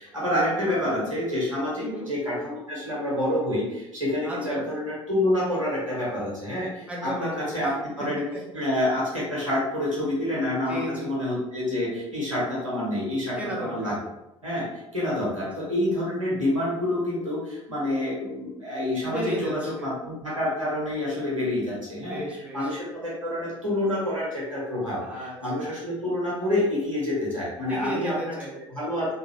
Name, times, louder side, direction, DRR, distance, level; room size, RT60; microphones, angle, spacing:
voice 1, 0.0-8.2 8.5-13.9 14.4-14.7 14.9-22.2 22.5-25.0 25.4-28.1 28.7-29.1, left 1 dB, 85° right, -7 dB, 1.2 m, -27 dB
voice 2, 1.8-2.1 4.2-4.7 6.9-7.7 10.7-11.1 13.3-14.0 15.3-15.4 19.0-19.9 22.0-22.8 24.9-25.8 27.7-28.6, right 1 dB, 10° right, -4 dB, 1.1 m, -34 dB
3.0 x 2.7 x 3.0 m, 0.92 s
figure-of-eight pair, 60°, 16 cm